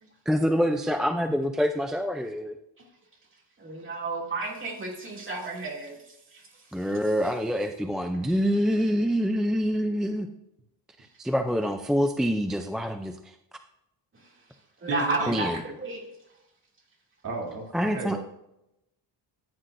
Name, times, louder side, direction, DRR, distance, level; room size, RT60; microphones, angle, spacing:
voice 1, 0.3-2.6 6.7-10.3 11.2-13.3 15.3-15.6 17.7-18.2, equal, ahead, 6 dB, 0.4 m, -26 dB
voice 2, 3.6-6.6 14.2-14.3 14.8-16.0, right 3 dB, 25° right, -1 dB, 2.5 m, -32 dB
voice 3, 14.9-15.4 17.2-18.2, right 2 dB, 45° right, -2 dB, 3.1 m, -33 dB
14.0 x 9.3 x 2.6 m, 0.84 s
cardioid pair, 135°, 46 cm